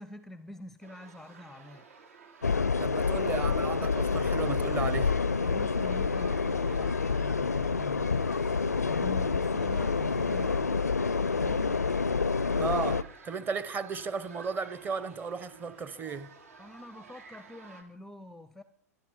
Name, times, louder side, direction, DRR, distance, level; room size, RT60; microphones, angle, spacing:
voice 1, 0.0-1.8 5.4-8.2 8.8-10.8 11.4-11.8 16.6-18.6, left 1 dB, 5° left, 0.7 m, -46 dB
sound 1, 0.8-17.8, right 4 dB, 70° right, 3.0 m, -54 dB
sound 2, 2.4-13.0, left 4 dB, 90° left, 0.5 m, -28 dB
voice 2, 2.7-5.2 12.6-16.3, right 5 dB, 20° right, 1.2 m, -35 dB
sound 3, 4.3-17.7, right 6 dB, 40° right, 5.4 m, -63 dB
24.0 x 10.5 x 5.5 m
figure-of-eight pair, 100°, 9 cm